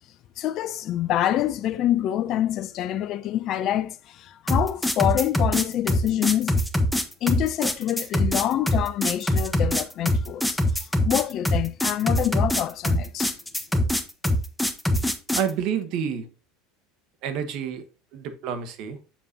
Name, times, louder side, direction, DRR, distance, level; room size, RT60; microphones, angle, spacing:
voice 1, 0.4-6.5 7.2-13.4, left 12 dB, 50° left, 0.5 m, -26 dB
sound 1, 4.5-15.5, left 1 dB, 5° left, 1.1 m, -23 dB
voice 2, 15.3-16.3 17.2-17.8 18.1-19.0, right 8 dB, 60° right, 1.3 m, -28 dB
7.3 x 7.1 x 2.8 m
hypercardioid pair, 80°, 0 cm